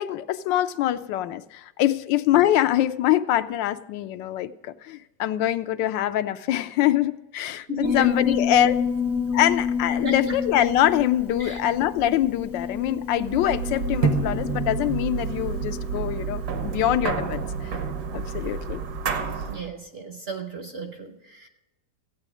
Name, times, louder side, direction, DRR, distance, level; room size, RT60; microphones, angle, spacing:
voice 1, 0.0-8.7 9.3-17.4 18.1-18.8, left 12 dB, 85° left, 12 dB, 1.3 m, -24 dB
voice 2, 7.7-8.1 10.0-10.4 11.4-11.6 13.4-13.5 19.4-21.5, equal, 45° right, 6 dB, 0.8 m, -33 dB
Piano, 7.8-18.5, left 6 dB, 15° right, 0.4 m, -30 dB
sound 1, 13.2-19.7, right 5 dB, 65° right, 1.6 m, -29 dB
15.0 x 9.0 x 4.9 m, 0.97 s
omnidirectional pair, 2.0 m